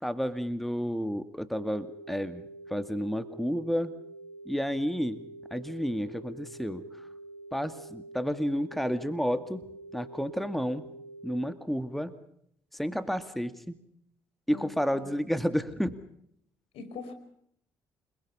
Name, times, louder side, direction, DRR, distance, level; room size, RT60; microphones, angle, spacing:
voice 1, 0.0-3.9 4.5-5.2 5.5-6.8 7.5-9.7 9.9-10.9 11.2-12.1 12.7-13.8 14.5-16.0, equal, ahead, 11 dB, 2.2 m, -31 dB
sound 1, 1.5-11.5, right 2 dB, 85° left, 2.0 m, -46 dB
voice 2, 14.5-15.3 16.7-17.1, left 4 dB, 70° left, 10 dB, 5.0 m, -43 dB
29.0 x 22.0 x 5.6 m, 0.70 s
hypercardioid pair, 55°, 10 cm